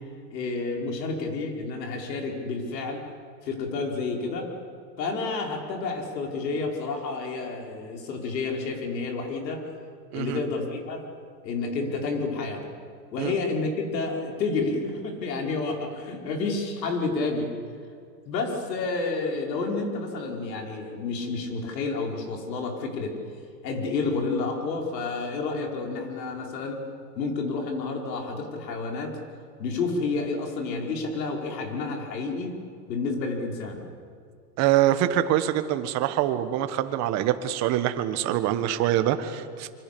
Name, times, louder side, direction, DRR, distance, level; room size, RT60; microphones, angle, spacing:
voice 1, 0.3-3.0 3.4-4.5 5.0-9.7 10.1-11.0 11.4-12.7 13.1-17.5 18.2-23.2 23.6-26.8 27.1-29.2 29.6-32.5 32.9-33.8, left 3 dB, 80° left, 2 dB, 5.3 m, -30 dB
voice 2, 34.6-39.7, right 12 dB, 30° right, 10 dB, 1.5 m, -24 dB
26.0 x 24.5 x 7.0 m, 2.2 s
supercardioid pair, 150°, 49 cm